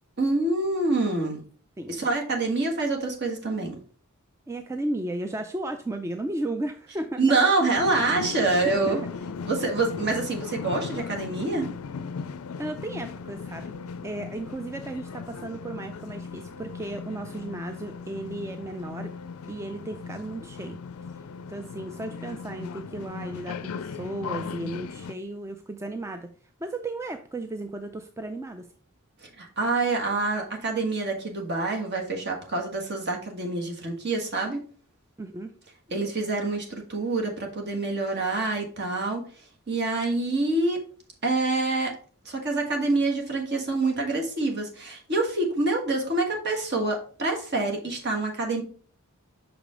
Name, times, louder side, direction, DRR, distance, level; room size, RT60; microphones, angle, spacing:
voice 1, 0.2-1.4 1.9-3.7 7.2-9.0 9.5-11.7 29.2-34.6 35.9-39.2 39.7-40.8 41.2-41.9 42.2-48.6, right 3 dB, 50° right, 1 dB, 1.5 m, -26 dB
voice 2, 4.5-7.2 8.6-9.0 12.6-13.7 14.0-19.1 19.5-20.8 21.5-26.3 26.6-28.7 35.2-35.5, right 2 dB, 15° right, 7 dB, 0.3 m, -34 dB
sound 1, 7.8-25.2, left 5 dB, 75° left, 0.4 m, -37 dB
6.0 x 5.0 x 3.7 m, 0.43 s
head